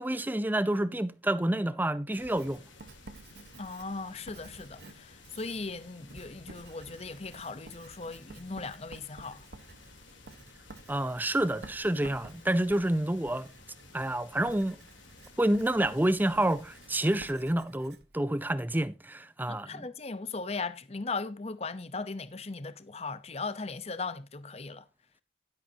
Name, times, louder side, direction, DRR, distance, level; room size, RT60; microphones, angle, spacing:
voice 1, 0.0-2.6 10.9-13.5 13.9-14.8 15.4-19.9, right 1 dB, 10° right, 0.6 m, -28 dB
sound 1, 2.1-17.2, left 3 dB, 85° left, 3.4 m, -55 dB
Writing, 2.2-18.9, right 2 dB, 60° right, 1.2 m, -52 dB
voice 2, 3.6-9.5 19.5-24.8, left 4 dB, 35° left, 0.8 m, -38 dB
11.5 x 10.5 x 2.8 m
head